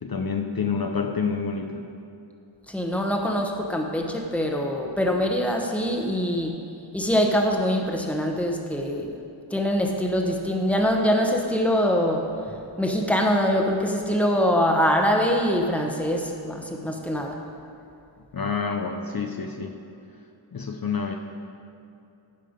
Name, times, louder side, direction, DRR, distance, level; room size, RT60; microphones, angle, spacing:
voice 1, 0.0-1.8 18.3-19.7 20.5-21.1, left 5 dB, 50° left, 4 dB, 0.7 m, -28 dB
voice 2, 2.7-6.6 6.9-9.1 9.5-12.3 12.8-17.4, equal, 5° left, 2 dB, 1.0 m, -23 dB
15.5 x 5.5 x 5.2 m, 2.7 s
wide cardioid pair, 90°, 48 cm